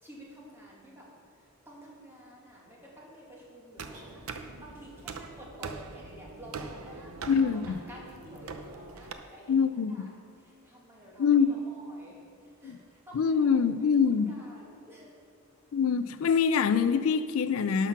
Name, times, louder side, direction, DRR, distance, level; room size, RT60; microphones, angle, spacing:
voice 1, 0.0-10.1 10.4-15.1, equal, 10° right, -5 dB, 2.3 m, -51 dB
sound 1, 3.8-9.1, right 4 dB, 75° right, 0.7 m, -42 dB
sound 2, 3.9-4.8, right 1 dB, 40° right, 1.6 m, -53 dB
voice 2, 7.3-7.8 9.5-9.9 11.2-11.6 12.6-12.8 13.1-14.3 15.7-17.9, left 6 dB, 70° left, 12 dB, 0.4 m, -24 dB
11.5 x 5.9 x 5.8 m, 2.5 s
head